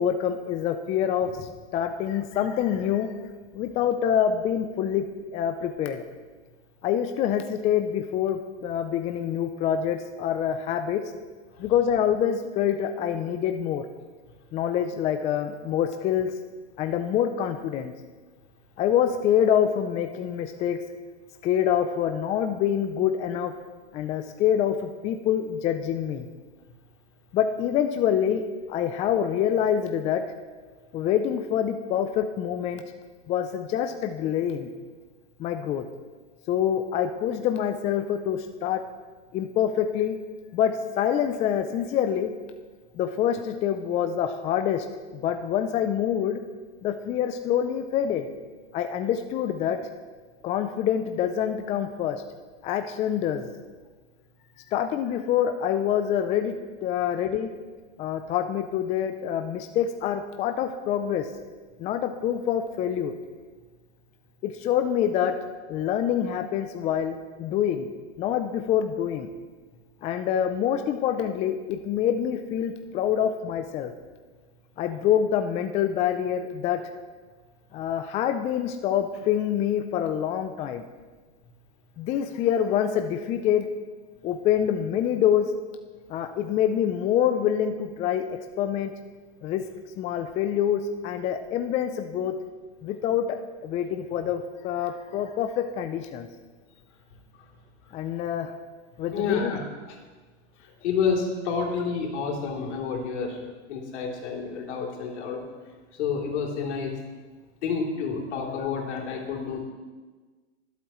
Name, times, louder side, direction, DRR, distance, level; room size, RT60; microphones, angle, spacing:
voice 1, 0.0-3.1 3.5-5.1 5.3-6.0 6.8-11.0 11.6-13.9 14.5-16.3 16.8-17.9 18.8-20.8 21.4-23.5 23.9-26.3 27.3-28.4 28.7-30.2 30.9-32.8 33.3-34.7 35.4-35.8 36.5-38.8 39.3-40.2 40.5-42.3 42.9-44.9 45.1-46.4 46.8-48.3 48.7-49.8 50.4-52.2 52.6-53.5 54.7-57.5 58.0-61.3 61.8-63.1 64.4-65.3 65.7-67.9 68.2-69.3 70.0-73.9 74.8-76.8 77.7-80.8 82.0-83.7 84.2-85.5 86.1-88.9 89.4-89.6 90.0-92.4 92.8-96.3 97.9-98.5 99.0-99.5, left 9 dB, 20° left, 7 dB, 0.4 m, -26 dB
voice 2, 99.1-99.6 100.8-105.4 105.9-107.0 107.6-109.6, left 5 dB, 65° left, -1 dB, 3.2 m, -29 dB
24.5 x 8.2 x 3.1 m, 1.4 s
hypercardioid pair, 130°, 37 cm